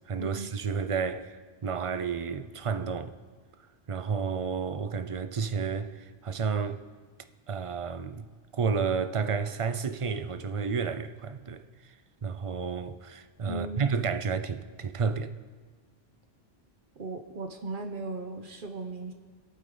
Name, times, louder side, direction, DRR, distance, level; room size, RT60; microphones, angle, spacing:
voice 1, 0.1-1.3 1.6-3.1 3.9-6.8 7.5-8.3 8.5-11.9 12.2-15.3, right 5 dB, 40° right, 0.6 m, -31 dB
voice 2, 13.4-13.8 17.0-19.1, right 2 dB, 55° right, 1.1 m, -37 dB
26.0 x 8.9 x 3.9 m
omnidirectional pair, 1.0 m